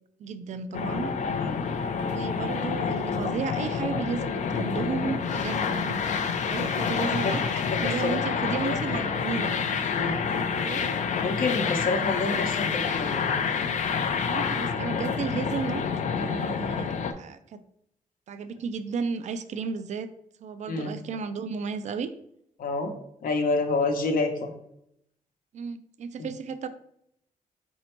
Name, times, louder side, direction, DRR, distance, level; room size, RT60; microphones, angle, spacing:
voice 1, 0.2-1.1 2.1-6.1 6.5-7.4 7.8-9.6 10.6-10.9 14.3-15.8 16.2-17.6 18.3-20.1 20.4-22.1 25.5-26.7, right 5 dB, 55° right, 11 dB, 0.4 m, -33 dB
sound 1, 0.7-17.1, left 6 dB, 55° left, 0.4 m, -28 dB
voice 2, 7.2-7.8 8.0-9.2 9.9-10.2 11.2-13.2 20.7-20.9 22.6-22.9 23.2-24.5 26.2-26.3, left 3 dB, 80° left, 3 dB, 0.8 m, -28 dB
4.2 x 2.7 x 4.3 m, 0.74 s
wide cardioid pair, 150°, 14 cm